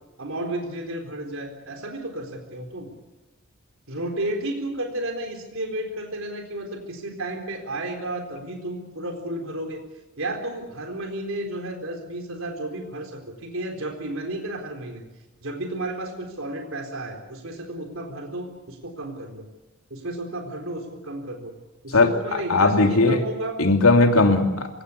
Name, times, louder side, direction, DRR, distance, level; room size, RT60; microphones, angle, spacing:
voice 1, 0.2-2.9 3.9-9.8 10.2-15.0 15.4-19.5 19.9-21.5 21.8-23.6, right 1 dB, 70° right, 4 dB, 4.0 m, -32 dB
voice 2, 22.5-23.2 23.6-24.7, left 3 dB, 90° left, 4 dB, 2.9 m, -17 dB
27.0 x 17.5 x 8.3 m, 1.1 s
head